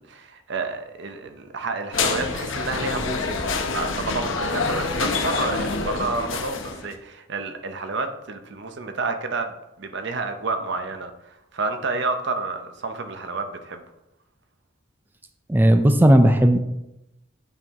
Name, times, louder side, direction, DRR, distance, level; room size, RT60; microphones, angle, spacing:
voice 1, 0.0-13.8, right 3 dB, 60° right, 7 dB, 0.7 m, -30 dB
sound 1, 1.9-6.9, left 4 dB, 75° left, 0.8 m, -26 dB
voice 2, 15.5-16.6, right 1 dB, 10° right, 7 dB, 0.4 m, -15 dB
8.8 x 4.4 x 3.6 m, 0.88 s
head